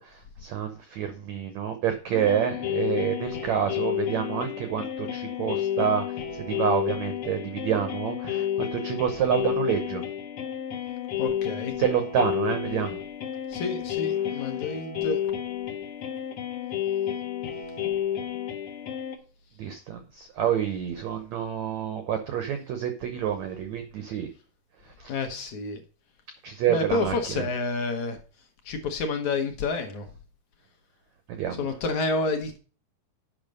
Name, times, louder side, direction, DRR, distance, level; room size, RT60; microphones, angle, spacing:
voice 1, 0.0-6.0 6.4-10.0 11.8-13.0 19.6-24.3 25.0-25.1 26.4-27.2 31.3-31.7, right 9 dB, 90° right, 8 dB, 1.6 m, -28 dB
sound 1, 2.1-19.2, left 10 dB, 85° left, 1.2 m, -31 dB
voice 2, 11.2-11.7 13.5-15.2 25.1-25.8 26.7-28.2 28.7-30.1 31.6-32.6, left 3 dB, 70° left, 5 dB, 1.7 m, -29 dB
8.7 x 5.9 x 5.3 m, 0.38 s
omnidirectional pair, 4.6 m